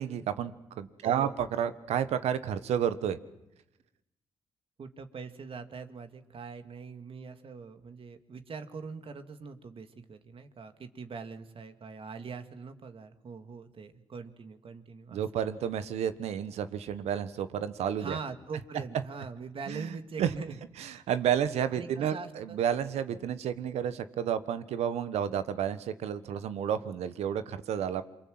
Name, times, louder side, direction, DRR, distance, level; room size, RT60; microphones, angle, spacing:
voice 1, 0.0-3.2 15.1-18.2 19.7-20.3 20.8-28.0, right 9 dB, 80° right, 12 dB, 1.3 m, -31 dB
voice 2, 1.0-1.4 4.8-15.2 18.0-20.6 21.7-22.6, right 5 dB, 55° right, 8 dB, 2.3 m, -42 dB
27.5 x 23.5 x 7.9 m, 0.89 s
supercardioid pair, 45°, 11 cm